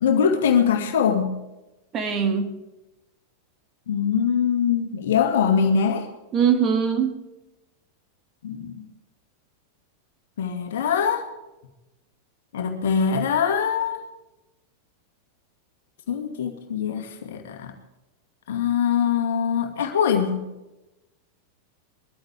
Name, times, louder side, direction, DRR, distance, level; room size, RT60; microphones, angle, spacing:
voice 1, 0.0-1.4 3.9-6.1 8.4-8.8 10.4-11.3 12.5-14.0 16.1-17.7 18.5-20.4, left 7 dB, 60° left, 2.2 m, -22 dB
voice 2, 1.9-2.6 6.3-7.2, right 7 dB, 30° right, 1.9 m, -22 dB
22.5 x 14.0 x 3.6 m
figure-of-eight pair, 90°, 0 cm